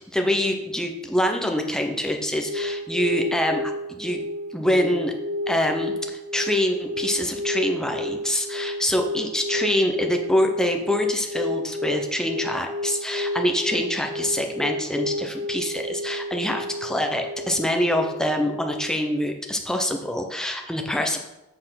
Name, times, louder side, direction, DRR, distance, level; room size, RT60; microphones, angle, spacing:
voice 1, 0.1-4.2 4.5-5.1 5.5-21.2, left 1 dB, 5° left, 3 dB, 0.7 m, -25 dB
sound 1, 2.4-19.3, left 1 dB, 80° right, 1.1 m, -31 dB
7.7 x 4.3 x 5.7 m, 1.0 s
head